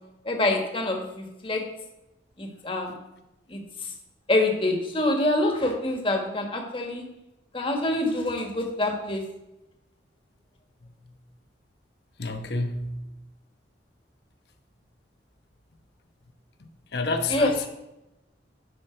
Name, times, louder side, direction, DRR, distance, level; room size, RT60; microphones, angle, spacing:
voice 1, 0.2-1.6 2.4-3.0 3.5-3.6 4.3-7.0 7.5-9.2 17.3-17.5, left 2 dB, 30° left, 1.6 m, -26 dB
voice 2, 12.2-12.9 16.9-17.7, left 3 dB, 65° left, 1.0 m, -28 dB
11.5 x 6.0 x 4.5 m
head